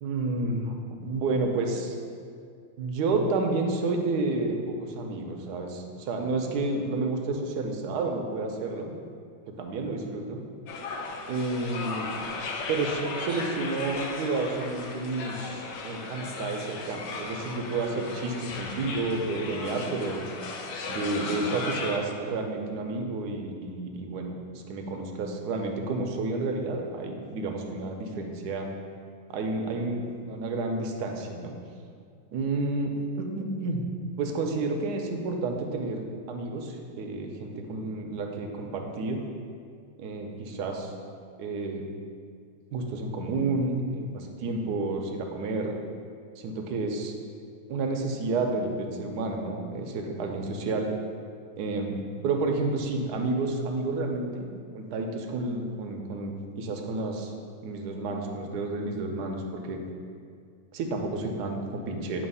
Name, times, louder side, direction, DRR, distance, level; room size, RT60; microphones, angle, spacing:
voice 1, 0.0-0.7 1.0-2.0 2.8-9.0 9.5-10.4 11.3-12.1 12.7-20.2 20.9-28.7 29.3-31.5 32.3-32.9 33.2-33.8 34.2-39.2 40.0-40.9 41.4-41.8 42.7-45.8 46.4-47.1 47.7-50.9 51.6-52.0 52.2-54.5 54.7-57.3 57.6-59.8 60.7-62.3, right 3 dB, 70° right, 2 dB, 1.2 m, -30 dB
sound 1, 10.7-22.0, left 3 dB, 75° left, 1.2 m, -36 dB
7.8 x 2.9 x 5.4 m, 2.2 s
omnidirectional pair, 2.0 m